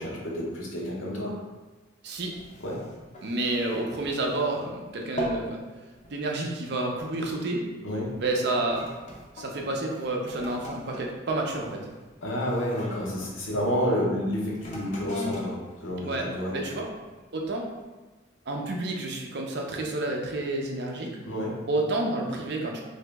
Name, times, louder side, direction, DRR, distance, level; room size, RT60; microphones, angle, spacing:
voice 1, 0.0-1.3 2.6-2.8 7.8-8.1 12.2-16.6 21.2-21.6, equal, 85° left, -4 dB, 0.9 m, -29 dB
sound 1, 2.1-4.7 5.0-5.5 5.9-6.2 6.9-7.2 7.9-13.7 14.5-16.8 17.4-17.5, equal, 35° left, 0.6 m, -40 dB
voice 2, 3.2-5.6 6.1-7.6 8.2-8.8 9.4-11.8 16.0-16.3 16.5-16.9 17.3-17.7 18.5-21.2 21.7-22.8, right 2 dB, 55° right, 0 dB, 0.5 m, -29 dB
2.9 x 2.7 x 3.4 m, 1.2 s
head